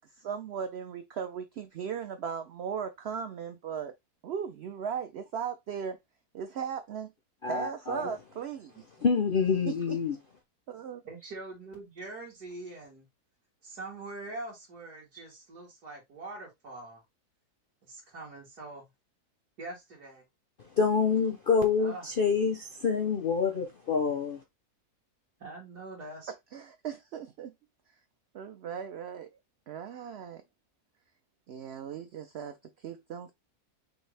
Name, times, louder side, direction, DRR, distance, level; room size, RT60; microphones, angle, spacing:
voice 1, 0.1-3.9 4.2-6.0 6.3-7.1 7.5-8.8 9.7-10.0 10.7-11.0 26.3-27.5 28.3-29.3 29.7-30.4 31.5-32.6 32.8-33.3, right 7 dB, 65° right, 0.6 m, -37 dB
voice 2, 7.4-8.1 9.0-10.2 20.8-24.4, left 5 dB, 55° left, 0.6 m, -27 dB
voice 3, 11.0-13.0 13.6-17.0 17.8-18.9 19.6-20.2 21.8-22.1 25.4-26.3, right 2 dB, 85° right, 2.4 m, -43 dB
6.3 x 2.5 x 3.3 m
omnidirectional pair, 1.6 m